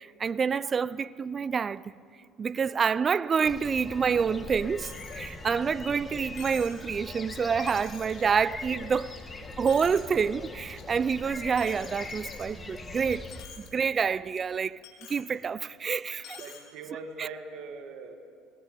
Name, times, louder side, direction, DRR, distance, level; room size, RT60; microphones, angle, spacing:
voice 1, 0.0-1.8 2.4-9.1 9.6-13.2 13.6-14.8 15.1-16.4 17.2-17.3, right 6 dB, 35° right, 0.6 m, -28 dB
sound 1, 3.4-13.5, left 3 dB, 25° left, 2.4 m, -41 dB
Coin (dropping), 4.8-5.2 5.6-5.7 6.4-6.8 7.3-7.4 7.7-8.2 8.7-9.2 9.5-10.2 10.6-10.8 11.6-12.8 13.1-13.7 14.0-14.1 14.8-15.3 16.2-16.6, left 8 dB, 60° left, 3.6 m, -48 dB
voice 2, 16.4-18.2, right 4 dB, 60° right, 2.2 m, -41 dB
20.5 x 20.0 x 8.4 m
hypercardioid pair, 65°, 0 cm